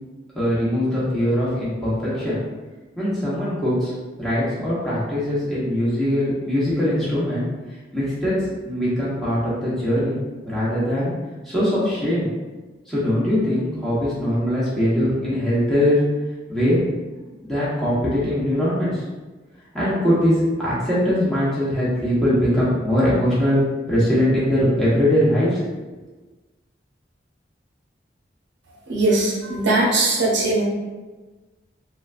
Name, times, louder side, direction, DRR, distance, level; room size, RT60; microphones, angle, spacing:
voice 1, 0.3-2.4 3.0-3.9 4.2-7.5 7.9-8.3 8.6-10.2 10.4-11.1 11.4-12.3 12.9-16.0 16.5-16.8 17.4-19.0 19.7-25.6, equal, ahead, -10 dB, 0.9 m, -21 dB
voice 2, 28.9-30.6, right 2 dB, 70° right, -4 dB, 0.6 m, -20 dB
3.9 x 2.2 x 2.4 m, 1.2 s
head